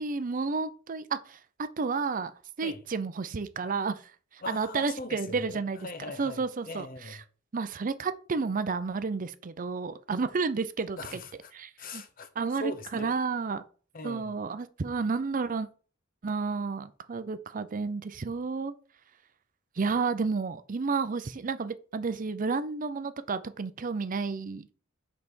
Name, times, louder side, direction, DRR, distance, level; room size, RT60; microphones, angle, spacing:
voice 1, 0.0-1.4 1.8-2.3 2.6-4.0 4.3-5.9 6.2-7.2 7.5-11.2 11.5-12.0 12.4-13.6 14.0-15.7 16.2-18.7 19.8-24.7, right 4 dB, 40° right, 0.5 m, -31 dB
voice 2, 4.4-7.2 11.0-11.5 11.8-12.3 12.6-13.1 13.9-14.4, left 2 dB, 45° left, 0.9 m, -40 dB
5.4 x 4.0 x 6.1 m
head